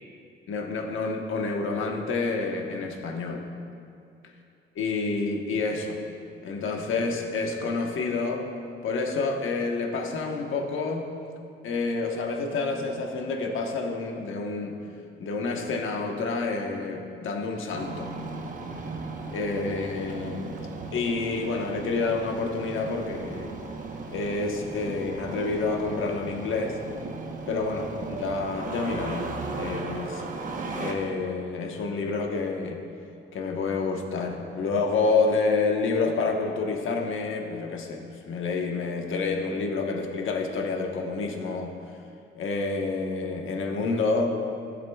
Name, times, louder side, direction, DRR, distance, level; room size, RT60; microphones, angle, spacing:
voice 1, 0.5-3.5 4.7-6.0 6.4-8.5 8.8-11.1 11.6-14.8 15.2-18.1 19.3-23.5 24.1-26.7 27.5-30.2 30.8-32.8 33.3-42.0 42.4-44.4, left 3 dB, 70° left, 1 dB, 1.2 m, -28 dB
Engine starting, 17.7-30.9, right 3 dB, 40° right, 1.0 m, -36 dB
16.0 x 7.6 x 2.3 m, 2.4 s
cardioid pair, 115°, 21 cm